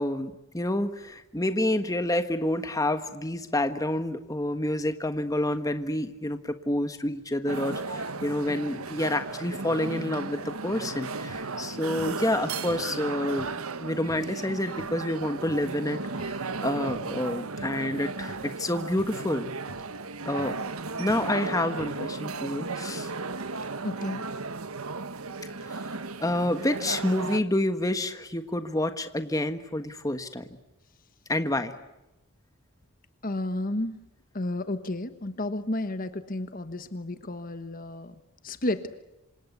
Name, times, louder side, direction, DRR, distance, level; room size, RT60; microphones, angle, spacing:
voice 1, 0.0-13.5 13.8-19.5 20.2-20.6 21.0-23.1 25.6-25.9 26.2-30.4 31.3-31.7, left 1 dB, 15° left, 9 dB, 1.4 m, -28 dB
sound 1, 7.5-27.4, right 3 dB, 85° right, 1.4 m, -35 dB
sound 2, 11.3-11.5 12.0-12.2 12.7-12.9 13.4-13.6 14.1-14.3 14.8-14.9 15.5-15.7 16.2-16.4 16.9-17.0 17.6-17.7 18.3-18.5 19.0-19.2 19.7-19.9 20.4-20.6 21.1-21.3 21.8-22.0, left 1 dB, 85° left, 4.0 m, -47 dB
voice 2, 23.8-24.2 33.2-33.9 34.3-38.2 38.4-38.9, left 1 dB, 40° left, 11 dB, 1.2 m, -32 dB
27.5 x 26.5 x 8.2 m, 0.97 s
head